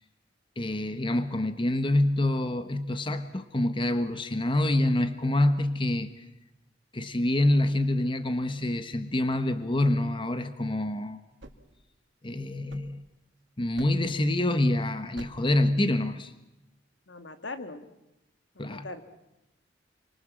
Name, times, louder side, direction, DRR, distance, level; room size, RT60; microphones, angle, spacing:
voice 1, 0.6-6.2 6.9-11.2 12.2-13.0 13.6-16.3 18.6-18.9, left 1 dB, 25° left, 10 dB, 1.2 m, -26 dB
sound 1, 11.4-13.3 13.7-14.2 15.1-15.6, right 1 dB, 80° right, 2.5 m, -50 dB
voice 2, 17.1-17.9 18.6-19.0, left 3 dB, 80° left, 9 dB, 2.2 m, -40 dB
28.5 x 24.5 x 7.5 m, 0.90 s
head